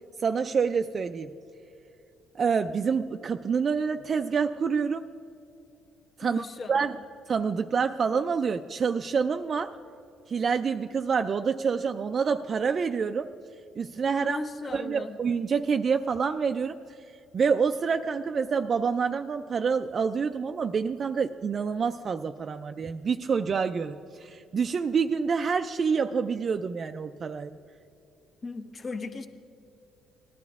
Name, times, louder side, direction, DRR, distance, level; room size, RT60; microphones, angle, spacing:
voice 1, 0.2-1.3 2.4-5.0 6.2-6.9 7.3-9.7 10.3-13.3 13.8-14.4 14.7-16.8 17.3-27.6, right 6 dB, 40° right, 7 dB, 0.3 m, -27 dB
voice 2, 6.2-7.0 14.1-15.2 28.4-29.3, left 3 dB, 35° left, 9 dB, 0.8 m, -37 dB
19.0 x 11.5 x 3.5 m, 2.8 s
cardioid pair, 100°, 0 cm